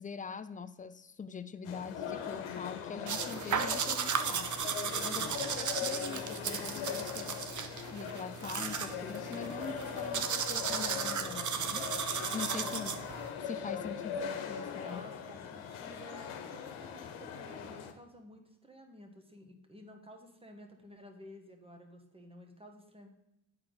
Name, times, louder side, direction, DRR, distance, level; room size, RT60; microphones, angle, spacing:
voice 1, 0.0-4.5 4.8-7.4 7.9-11.9 12.3-13.0 13.4-15.0, left 5 dB, 20° left, 12 dB, 0.3 m, -43 dB
sound 1, 1.6-17.9, left 7 dB, 80° left, 1.0 m, -40 dB
sound 2, 3.1-13.3, right 7 dB, 40° right, 0.7 m, -35 dB
voice 2, 5.1-5.5 12.8-13.1 14.7-23.1, equal, 10° right, 4 dB, 1.4 m, -53 dB
9.6 x 4.5 x 3.9 m, 0.87 s
cardioid pair, 75°, 48 cm